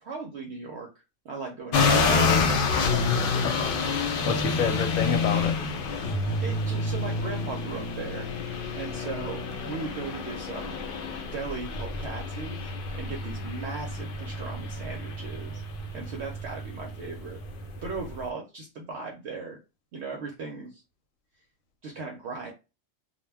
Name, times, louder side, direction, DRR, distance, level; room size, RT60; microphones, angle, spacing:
voice 1, 0.0-2.5 6.0-6.2 6.4-8.3 8.7-10.8 11.2-15.6 15.9-17.4 17.8-19.6 19.9-20.8 21.8-22.5, right 4 dB, 65° right, 0.8 m, -38 dB
sound 1, 1.7-18.2, left 4 dB, 65° left, 0.5 m, -28 dB
voice 2, 3.0-5.5, left 5 dB, 80° left, 1.0 m, -30 dB
2.3 x 2.1 x 3.2 m
omnidirectional pair, 1.4 m